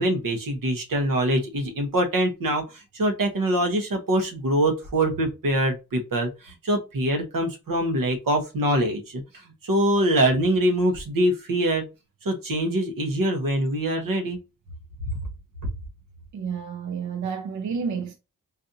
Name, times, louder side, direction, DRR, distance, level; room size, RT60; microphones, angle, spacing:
voice 1, 0.0-9.2 9.6-11.9 12.2-14.4 15.6-15.7, right 1 dB, 75° right, 1.0 m, -24 dB
voice 2, 16.3-18.1, right 6 dB, 60° right, 0.5 m, -30 dB
4.0 x 2.5 x 2.6 m
cardioid pair, 75°, 34 cm